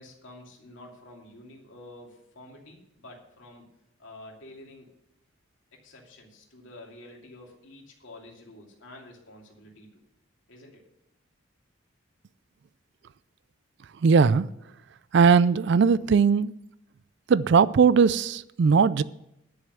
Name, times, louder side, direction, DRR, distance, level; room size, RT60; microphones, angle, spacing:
voice 1, 0.0-3.6 4.0-4.9 5.7-10.0 10.5-10.8, left 1 dB, 65° left, 2.7 m, -49 dB
voice 2, 14.0-14.5 15.1-16.5 17.3-19.0, right 5 dB, 55° right, 0.3 m, -19 dB
10.5 x 6.9 x 7.9 m
head